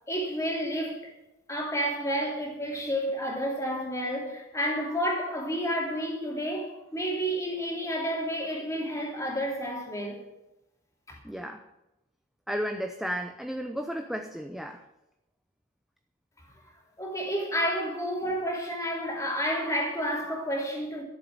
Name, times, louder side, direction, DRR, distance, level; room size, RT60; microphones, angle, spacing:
voice 1, 0.1-1.1 1.5-10.2 11.1-11.2 17.0-21.0, equal, 15° left, 3.1 m, -30 dB
voice 2, 11.2-11.6 12.5-14.8, equal, ahead, 0.7 m, -33 dB
13.0 x 7.5 x 8.7 m
head